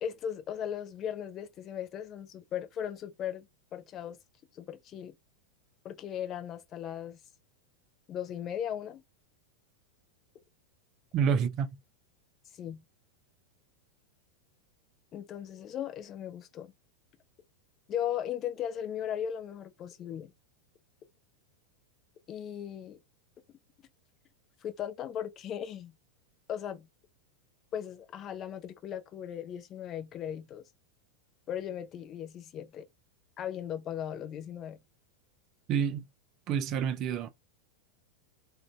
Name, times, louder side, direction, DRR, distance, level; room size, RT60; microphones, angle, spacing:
voice 1, 0.0-3.5 3.7-4.2 4.5-5.2 5.8-7.2 8.1-9.0 12.6-12.8 15.1-16.7 17.9-20.3 22.3-23.0 24.6-25.9 26.5-26.9 27.7-30.6 31.5-32.9 33.4-34.8, left 9 dB, 30° left, 0.5 m, -37 dB
voice 2, 11.1-11.8 35.7-36.1 36.5-37.3, right 7 dB, 35° right, 0.5 m, -28 dB
2.5 x 2.3 x 3.1 m
figure-of-eight pair, 90°, 0 cm